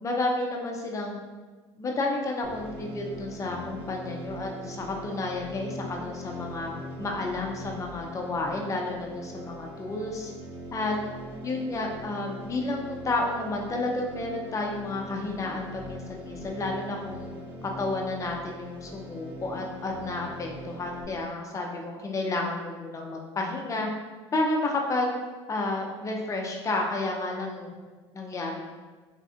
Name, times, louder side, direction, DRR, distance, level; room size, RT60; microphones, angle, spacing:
voice 1, 0.0-1.2 1.8-6.7 7.0-10.3 10.7-11.0 11.4-17.3 17.6-23.9 24.3-25.1 25.5-27.8 28.1-28.6, left 2 dB, 20° left, 0 dB, 0.5 m, -31 dB
sound 1, 2.4-21.0, equal, 65° right, 1.0 m, -41 dB
3.2 x 2.4 x 2.4 m, 1.3 s
hypercardioid pair, 75°, 15 cm